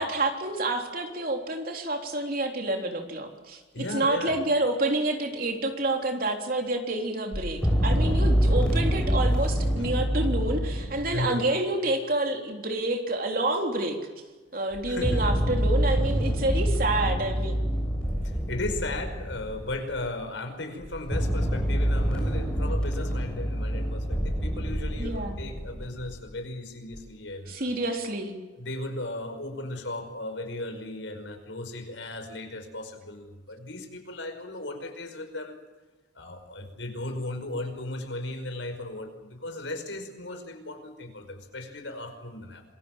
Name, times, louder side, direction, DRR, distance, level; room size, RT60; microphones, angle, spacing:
voice 1, 0.0-3.6 3.9-14.0 14.5-17.6 25.0-25.4 27.5-28.4, right 2 dB, 50° right, 3 dB, 3.7 m, -28 dB
voice 2, 3.7-4.4 9.3-9.4 9.8-10.1 11.1-11.4 14.9-15.3 18.2-27.7 28.6-35.6 36.2-42.6, left 2 dB, 80° left, 6 dB, 5.3 m, -36 dB
sound 1, 7.3-11.2 14.7-20.1 20.8-26.2 26.9-27.0, equal, 5° left, 7.4 m, -26 dB
27.0 x 22.5 x 7.4 m, 1.2 s
head